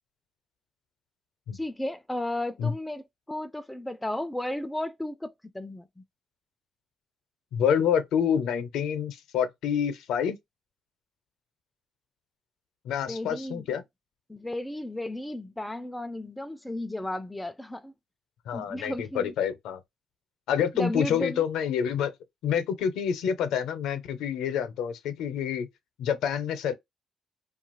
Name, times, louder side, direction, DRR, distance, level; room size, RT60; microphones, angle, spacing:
voice 1, 1.5-6.0 13.1-13.7 14.3-17.9 18.5-19.3 20.7-21.4, left 1 dB, 10° left, 0.3 m, -34 dB
voice 2, 7.5-10.4 12.8-13.8 18.5-19.8 20.5-22.1 22.4-25.7 26.0-26.7, left 8 dB, 85° left, 0.6 m, -27 dB
2.7 x 2.4 x 2.9 m
cardioid pair, 90°, 0 cm